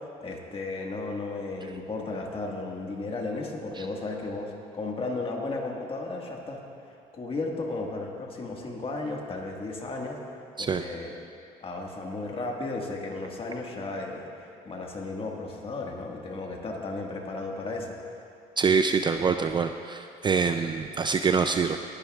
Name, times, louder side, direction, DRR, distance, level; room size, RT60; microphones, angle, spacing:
voice 1, 0.2-6.6 7.1-10.2 10.6-11.1 11.6-18.0, left 3 dB, 35° left, 0 dB, 1.6 m, -34 dB
voice 2, 18.6-21.8, right 5 dB, 25° right, 7 dB, 0.4 m, -25 dB
18.5 x 11.5 x 2.4 m, 2.4 s
cardioid pair, 110°, 17 cm